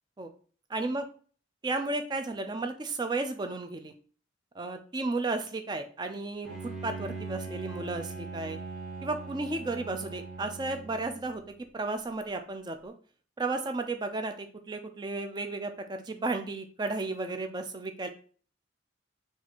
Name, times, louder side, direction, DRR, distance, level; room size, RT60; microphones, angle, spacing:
voice 1, 0.7-1.0 1.6-3.9 4.6-8.6 9.0-11.4 11.7-12.9 13.4-18.1, right 3 dB, 25° right, 7 dB, 0.3 m, -33 dB
Bowed string instrument, 6.4-11.4, right 4 dB, ahead, 1.3 m, -41 dB
4.2 x 2.4 x 2.8 m, 0.42 s
head